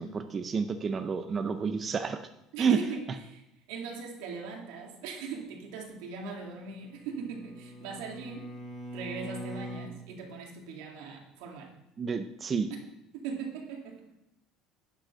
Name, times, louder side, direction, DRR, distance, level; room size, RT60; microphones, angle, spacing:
voice 1, 0.0-2.2 2.6-2.8 12.0-12.7, right 6 dB, 25° right, 8 dB, 0.5 m, -29 dB
voice 2, 2.5-3.4 3.7-8.5 8.9-11.7 12.7-12.8 13.1-14.0, right 5 dB, 85° right, 2 dB, 2.2 m, -40 dB
Bowed string instrument, 6.6-9.9, equal, 10° left, 2.9 m, -42 dB
10.5 x 5.3 x 5.9 m, 0.85 s
cardioid pair, 140°, 0 cm